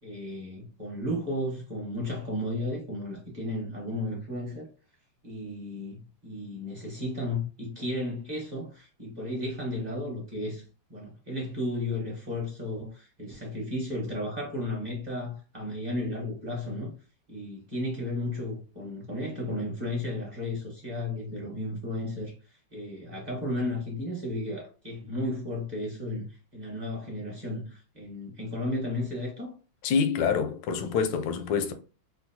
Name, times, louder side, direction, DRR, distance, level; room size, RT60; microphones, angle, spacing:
voice 1, 0.0-4.7 5.2-10.6 10.9-16.9 17.3-22.3 22.7-29.5, left 1 dB, 35° right, 0.7 m, -34 dB
voice 2, 29.8-31.7, left 6 dB, 75° left, 1.1 m, -26 dB
4.4 x 2.0 x 2.7 m
omnidirectional pair, 2.3 m